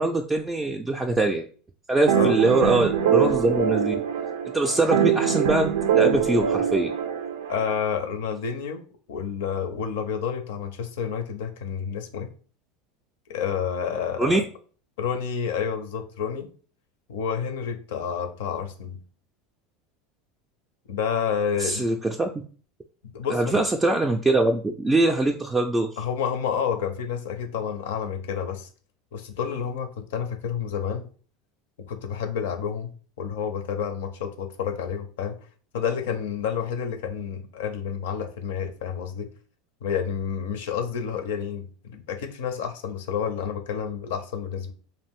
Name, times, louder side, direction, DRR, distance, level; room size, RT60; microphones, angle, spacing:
voice 1, 0.0-1.5 1.9-3.9 4.5-6.9 14.2-14.4 21.6-22.4 23.3-25.9, right 2 dB, 15° right, 2 dB, 0.3 m, -23 dB
sound 1, 2.1-7.7, right 8 dB, 85° right, 0.4 m, -23 dB
voice 2, 7.5-12.3 13.3-14.4 15.0-16.5 17.1-19.0 20.9-21.8 23.1-23.6 26.0-28.7 29.1-31.1 31.9-35.4 35.7-39.3 39.8-44.7, left 7 dB, 80° left, 7 dB, 0.4 m, -29 dB
2.6 x 2.4 x 3.4 m, 0.41 s
hypercardioid pair, 95°, 0 cm